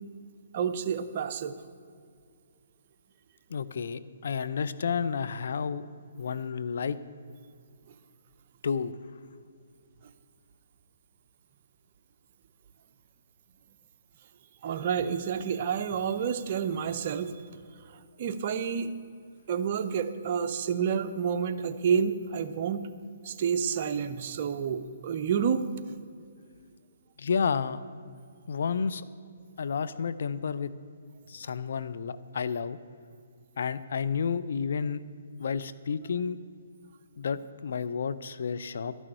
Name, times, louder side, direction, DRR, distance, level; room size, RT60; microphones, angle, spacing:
voice 1, 0.5-1.5 14.6-18.9 19.5-22.9 23.2-25.6, right 7 dB, 45° right, 9 dB, 0.7 m, -29 dB
voice 2, 3.5-5.9 6.2-7.0 8.6-8.9 27.2-27.8 28.5-29.0 29.6-30.7 31.3-32.8 33.6-35.0 35.4-36.4 37.2-38.9, left 6 dB, 65° left, 14 dB, 0.5 m, -31 dB
12.5 x 6.3 x 8.9 m, 2.2 s
hypercardioid pair, 145°, 0 cm